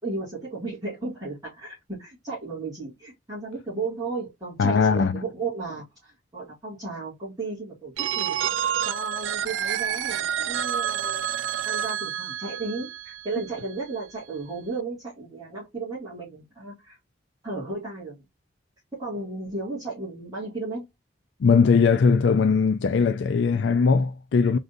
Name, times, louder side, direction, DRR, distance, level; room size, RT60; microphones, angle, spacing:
voice 1, 0.0-17.0 17.4-18.2 19.0-20.8, right 3 dB, 20° right, 2.2 m, -34 dB
voice 2, 4.6-5.2 21.4-24.6, left 5 dB, 70° left, 0.4 m, -20 dB
Telephone, 8.0-13.7, right 9 dB, 90° right, 0.3 m, -29 dB
3.9 x 3.7 x 2.5 m
head